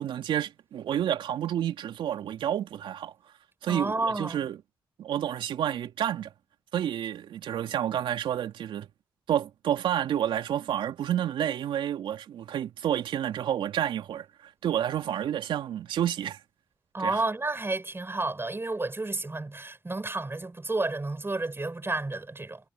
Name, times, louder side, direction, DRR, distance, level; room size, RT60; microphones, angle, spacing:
voice 1, 0.0-3.1 3.6-4.6 5.0-6.3 6.7-8.9 9.3-14.3 14.6-16.4 17.0-17.2, right 10 dB, 75° right, 3.1 m, -29 dB
voice 2, 3.7-4.5 16.9-22.6, right 2 dB, 25° right, 8.0 m, -31 dB
hypercardioid pair, 40°, 9 cm